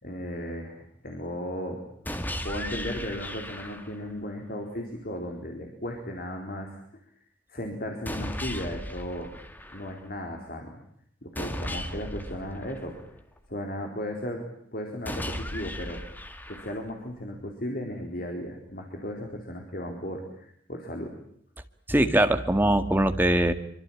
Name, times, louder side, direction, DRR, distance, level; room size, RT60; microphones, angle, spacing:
voice 1, 0.0-1.8 2.4-6.8 7.5-9.4 9.7-10.8 11.2-13.0 13.5-16.0 16.5-21.2, left 1 dB, 50° left, 2 dB, 4.2 m, -35 dB
sound 1, 2.1-4.1 8.1-10.1 11.4-13.4 15.1-17.1, equal, 10° left, 1.9 m, -36 dB
voice 2, 21.9-23.5, right 1 dB, 10° right, 7 dB, 1.8 m, -22 dB
25.0 x 24.5 x 8.9 m, 0.67 s
head